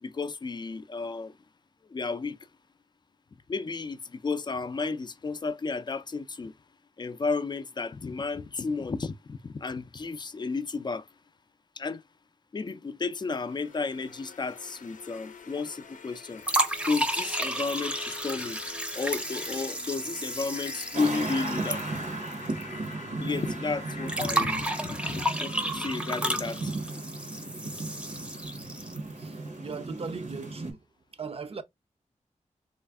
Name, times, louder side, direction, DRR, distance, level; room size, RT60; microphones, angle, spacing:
voice 1, 0.0-1.3 1.9-2.4 3.5-6.5 7.0-11.1 11.8-12.0 12.5-16.4 16.9-18.6 18.9-21.9 23.2-26.7, left 4 dB, 35° left, 0.4 m, -33 dB
sound 1, 13.2-26.1, left 5 dB, 85° left, 0.6 m, -47 dB
sound 2, 16.4-22.6 22.9-23.0 24.1-29.1, right 1 dB, 10° right, 0.6 m, -32 dB
sound 3, 20.9-30.7, right 2 dB, 70° right, 0.9 m, -36 dB
voice 2, 29.2-30.8 31.1-31.6, right 5 dB, 50° right, 0.5 m, -38 dB
3.2 x 2.4 x 3.5 m
wide cardioid pair, 95°, 13 cm